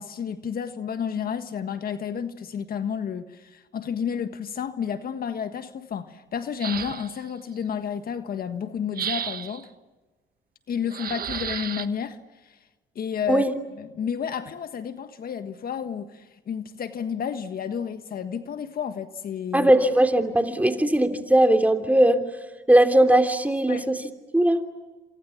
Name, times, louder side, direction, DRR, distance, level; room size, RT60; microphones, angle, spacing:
voice 1, 0.0-9.7 10.7-12.6 12.9-13.4 13.8-19.7 23.7-23.8, left 7 dB, 55° left, 1.5 m, -31 dB
sound 1, 6.6-7.3 8.9-9.7 10.9-11.9, right 9 dB, 55° right, 1.2 m, -32 dB
voice 2, 19.5-22.2 22.7-24.0 24.3-24.6, right 1 dB, 10° right, 3.2 m, -19 dB
28.0 x 27.0 x 7.3 m
supercardioid pair, 75°, 18 cm